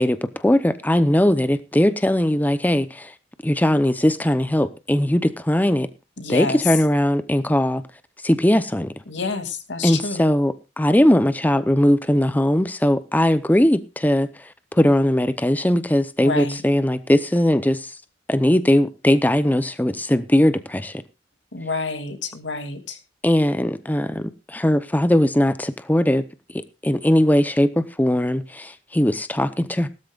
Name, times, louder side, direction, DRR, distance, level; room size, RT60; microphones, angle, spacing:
voice 1, 0.0-3.1 3.4-5.9 6.3-7.8 8.2-8.9 9.8-18.0 18.3-21.0 23.2-26.3 26.5-29.9, left 1 dB, 10° left, 12 dB, 0.7 m, -19 dB
voice 2, 6.2-6.6 9.1-10.3 16.2-16.6 21.5-23.0, left 3 dB, 85° left, 6 dB, 2.7 m, -28 dB
18.5 x 13.0 x 2.4 m, 0.28 s
head